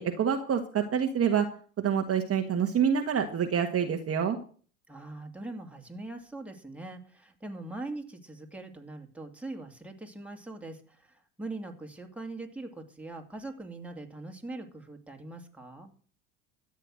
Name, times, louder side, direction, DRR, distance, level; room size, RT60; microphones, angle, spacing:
voice 1, 0.0-1.5 1.8-4.4, right 7 dB, 35° right, 5 dB, 1.6 m, -27 dB
voice 2, 4.9-15.9, right 2 dB, 5° right, 2 dB, 2.7 m, -42 dB
13.5 x 8.4 x 6.4 m, 0.43 s
hypercardioid pair, 75°, 41 cm